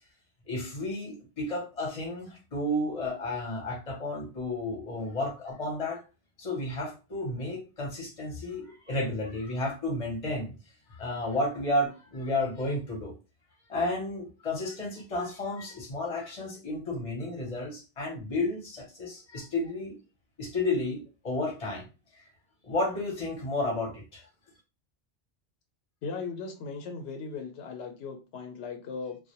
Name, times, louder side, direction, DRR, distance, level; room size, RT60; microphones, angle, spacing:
voice 1, 0.5-6.0 6.4-10.5 10.9-13.1 13.7-20.0 20.4-21.9 22.6-24.3, left 2 dB, 40° left, -1 dB, 0.7 m, -32 dB
voice 2, 26.0-29.2, left 4 dB, 85° left, 4 dB, 0.9 m, -38 dB
2.2 x 2.1 x 2.8 m, 0.30 s
omnidirectional pair, 1.1 m